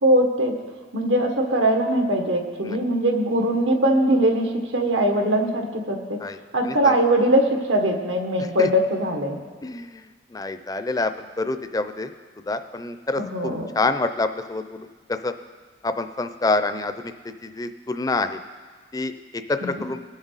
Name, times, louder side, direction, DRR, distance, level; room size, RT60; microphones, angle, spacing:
voice 1, 0.0-0.5 0.9-6.2 6.5-9.4 13.2-13.7 19.6-19.8, right 1 dB, 85° right, 2 dB, 1.6 m, -21 dB
voice 2, 6.6-6.9 8.6-8.7 9.6-9.9 10.3-11.1 11.4-12.1 12.5-13.2 13.7-15.3 15.8-17.1 17.4-18.4 18.9-20.0, left 3 dB, 20° left, 10 dB, 0.5 m, -26 dB
21.5 x 7.3 x 4.0 m, 1.5 s
head